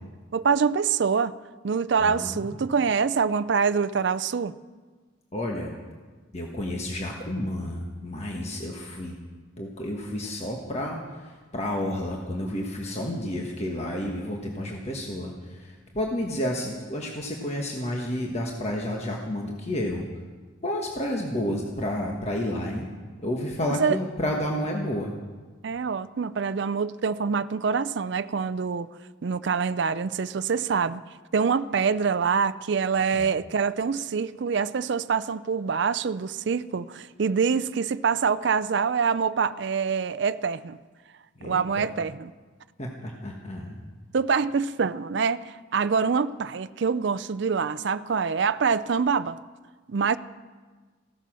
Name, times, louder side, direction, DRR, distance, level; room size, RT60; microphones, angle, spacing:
voice 1, 0.3-1.3 1.6-4.5 23.8-24.0 25.6-28.9 29.2-31.0 31.3-40.8 41.4-42.3 44.1-49.4 49.9-50.2, right 5 dB, 55° right, 0.4 m, -25 dB
voice 2, 2.0-2.6 5.3-5.8 6.3-9.1 9.6-20.1 20.6-22.9 23.2-25.1 33.1-33.3 41.4-41.9 42.8-43.8, left 1 dB, 30° left, 1.3 m, -31 dB
16.0 x 13.5 x 6.2 m
head